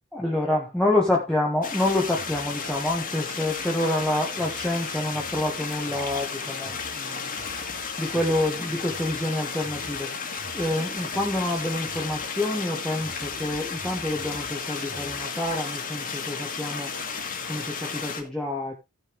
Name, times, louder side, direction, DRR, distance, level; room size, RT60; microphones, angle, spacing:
voice 1, 0.1-7.3 8.0-10.1 10.5-16.9 17.5-18.7, left 1 dB, 5° left, 1.6 m, -27 dB
sound 1, 1.6-18.2, left 5 dB, 45° left, 2.1 m, -33 dB
sound 2, 1.8-15.6, right 2 dB, 55° right, 3.4 m, -47 dB
15.5 x 6.5 x 3.3 m
head